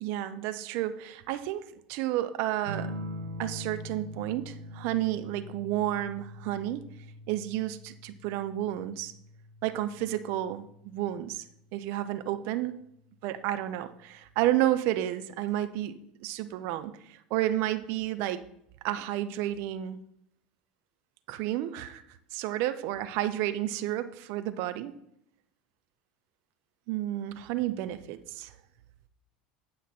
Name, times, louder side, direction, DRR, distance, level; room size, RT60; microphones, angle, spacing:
voice 1, 0.0-2.9 3.4-6.9 7.3-9.1 9.6-11.4 11.7-12.7 13.2-18.5 18.8-20.0 21.3-22.0 22.3-24.9 26.9-28.5, right 13 dB, 60° right, 12 dB, 0.6 m, -31 dB
sound 1, 2.7-11.7 13.2-13.7, equal, 75° right, 0.9 m, -43 dB
9.6 x 5.8 x 4.2 m, 0.75 s
hypercardioid pair, 80°, 4 cm